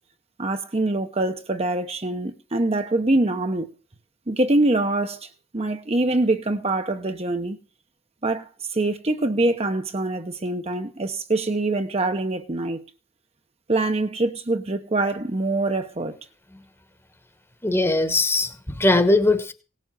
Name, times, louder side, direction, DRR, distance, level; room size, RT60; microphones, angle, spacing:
voice 1, 0.4-3.7 4.3-7.6 8.2-12.8 13.7-16.2, right 2 dB, 30° right, 0.8 m, -24 dB
voice 2, 17.6-19.5, left 2 dB, 10° left, 1.2 m, -20 dB
18.0 x 7.3 x 7.3 m
head